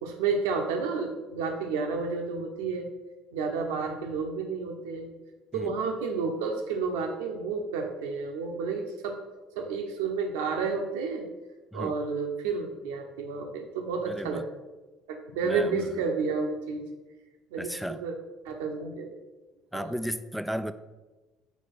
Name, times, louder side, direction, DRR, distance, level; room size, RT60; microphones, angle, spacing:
voice 1, 0.0-2.9 3.3-5.1 5.5-9.2 9.5-11.3 11.7-14.4 15.1-16.9 17.5-18.1 18.4-19.2 19.7-19.9, right 5 dB, 65° right, 4 dB, 1.0 m, -31 dB
voice 2, 14.1-14.5 15.4-16.0 17.6-18.0 19.7-20.7, equal, ahead, 11 dB, 0.4 m, -34 dB
8.4 x 4.9 x 4.2 m, 1.2 s
figure-of-eight pair, 55°, 0 cm